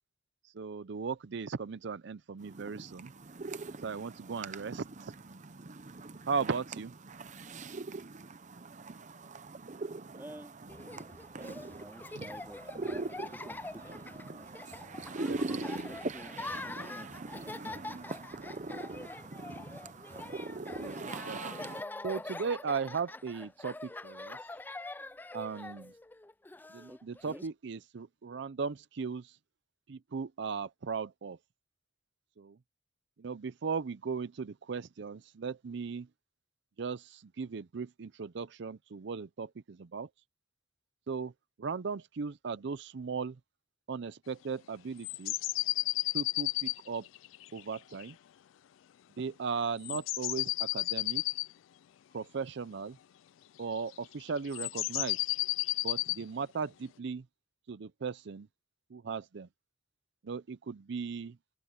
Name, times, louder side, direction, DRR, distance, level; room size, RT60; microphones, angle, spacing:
voice 1, 0.4-3.1 3.8-5.1 6.3-6.9 12.2-12.3 15.2-15.9 20.4-21.7 22.0-24.4 25.3-25.9 26.7-29.4 29.9-31.4 32.4-32.6 33.2-36.1 36.8-40.1 41.1-41.3 41.6-43.4 43.9-45.5 46.1-47.1 47.5-48.2 49.2-51.2 52.1-53.0 53.6-55.3 55.8-57.2 57.7-58.5 58.9-59.5 60.2-61.4, right 5 dB, 65° right, 0.5 m, -37 dB
sound 1, 2.4-21.8, right 3 dB, 40° right, 0.8 m, -42 dB
voice 2, 10.1-10.6 11.3-14.1 15.4-17.8 26.9-27.4, right 1 dB, 10° right, 3.0 m, -51 dB
Laughter, 10.7-27.5, left 2 dB, 10° left, 0.3 m, -45 dB
sound 2, 45.0-48.1 49.8-51.5 53.8-54.0 54.4-56.2, left 20 dB, 90° left, 0.3 m, -32 dB
open air
head